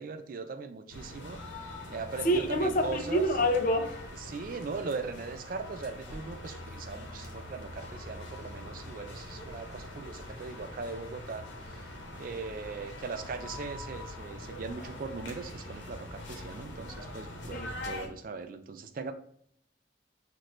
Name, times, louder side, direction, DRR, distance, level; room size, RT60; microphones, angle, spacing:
voice 1, 0.0-1.4 1.9-3.2 4.2-19.1, right 4 dB, 45° right, 0.3 m, -40 dB
sound 1, 0.9-18.1, left 1 dB, 70° left, 1.0 m, -43 dB
voice 2, 2.2-4.0 17.5-17.7, equal, 45° left, 0.6 m, -27 dB
6.0 x 2.5 x 3.1 m
head